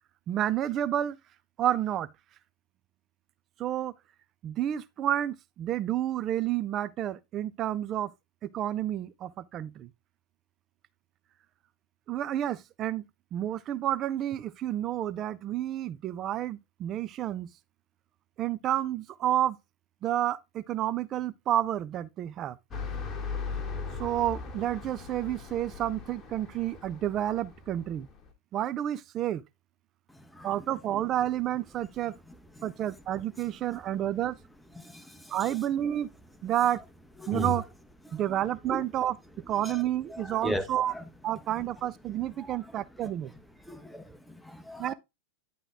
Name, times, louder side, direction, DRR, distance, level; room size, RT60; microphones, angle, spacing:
voice 1, 0.3-1.2 1.6-2.1 3.6-3.9 4.4-8.1 8.4-9.9 12.1-13.0 13.3-17.5 18.4-19.6 20.0-22.6 24.0-28.1 28.5-29.4 30.4-32.2 32.6-34.4 35.3-36.1 36.4-36.8 37.3-37.6 38.1-39.2 39.5-40.9 41.2-43.3 44.8-44.9, right 12 dB, 30° right, 0.4 m, -30 dB
sound 1, 22.7-28.3, left 5 dB, 25° left, 1.0 m, -39 dB
voice 2, 34.8-35.3 37.2-37.5 38.1-38.2 38.7-38.8 39.6-39.8 40.1-41.0 42.5-42.6 43.7-44.9, equal, 5° left, 0.7 m, -36 dB
10.0 x 3.7 x 3.8 m
figure-of-eight pair, 90°, 0 cm